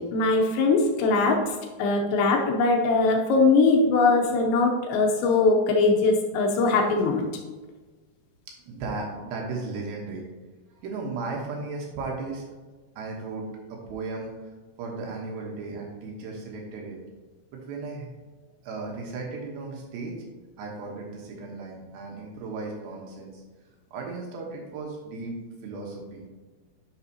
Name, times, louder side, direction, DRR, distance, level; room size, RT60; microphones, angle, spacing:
voice 1, 0.0-1.4 1.8-7.3, left 3 dB, 80° left, 2 dB, 2.8 m, -21 dB
voice 2, 8.6-10.3 10.8-12.5 13.0-14.3 14.8-17.0 17.5-18.1 18.6-20.2 20.6-23.4 23.9-25.4 25.6-26.2, right 3 dB, 70° right, -1 dB, 3.1 m, -35 dB
10.5 x 6.2 x 2.8 m, 1.3 s
omnidirectional pair, 5.6 m